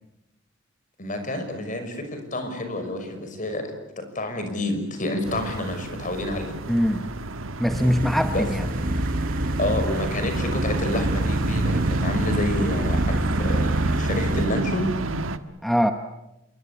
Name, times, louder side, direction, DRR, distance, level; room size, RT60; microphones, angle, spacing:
voice 1, 1.0-6.5 8.3-8.5 9.6-14.9, left 1 dB, 40° left, 7 dB, 5.8 m, -29 dB
sound 1, 5.2-15.4, right 2 dB, 85° right, 1.5 m, -30 dB
voice 2, 6.7-7.1 7.6-8.7 15.6-15.9, equal, ahead, 7 dB, 1.1 m, -22 dB
sound 2, 7.7-14.5, right 1 dB, 45° right, 1.2 m, -26 dB
28.0 x 23.0 x 8.5 m, 0.94 s
head